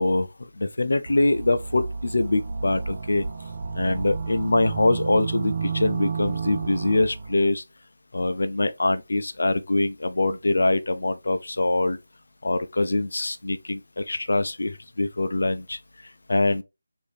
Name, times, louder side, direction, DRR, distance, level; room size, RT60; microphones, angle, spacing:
voice 1, 0.0-3.2 3.7-7.6 8.1-12.0 12.4-15.8 16.3-16.6, left 2 dB, 70° left, 0.5 m, -24 dB
sound 1, 1.1-7.4, right 5 dB, 40° right, 0.4 m, -31 dB
4.8 x 2.6 x 3.2 m
figure-of-eight pair, 165°, 0 cm